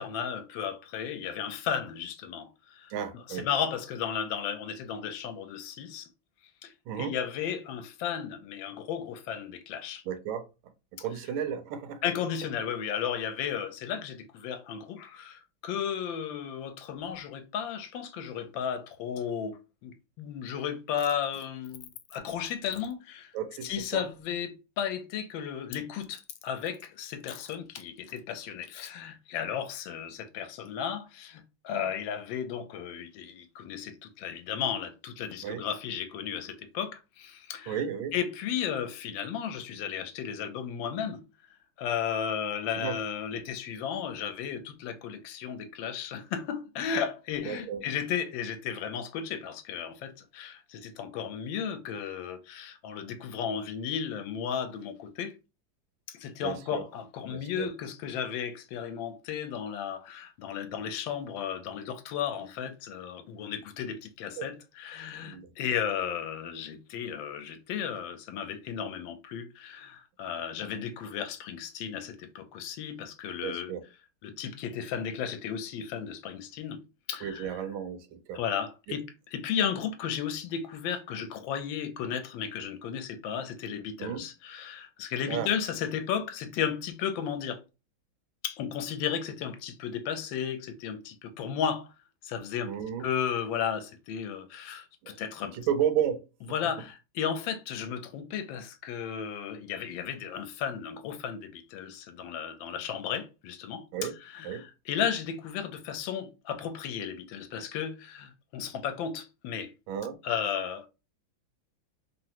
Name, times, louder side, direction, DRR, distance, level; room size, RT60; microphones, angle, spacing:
voice 1, 0.0-2.9 3.3-6.1 6.6-10.0 12.0-23.3 23.6-37.8 38.1-41.2 41.8-55.3 56.1-73.7 74.2-76.8 77.1-77.6 78.3-79.1 79.3-87.6 88.4-91.9 92.2-92.7 93.0-95.6 96.5-109.7 110.2-110.9, left 8 dB, 80° left, 1.3 m, -34 dB
voice 2, 2.9-3.5 6.9-7.2 10.1-12.0 23.3-24.0 35.4-35.7 37.7-38.1 42.8-42.9 47.5-47.8 56.4-56.8 57.3-57.7 64.4-64.5 65.2-65.5 73.4-73.8 77.2-78.4 78.9-79.0 84.0-84.2 85.3-85.5 92.7-93.1 95.0-95.2 95.5-96.3 103.9-104.1 104.4-104.7 109.9-110.2, right 9 dB, 85° right, 1.4 m, -33 dB
3.6 x 2.0 x 2.8 m
omnidirectional pair, 2.2 m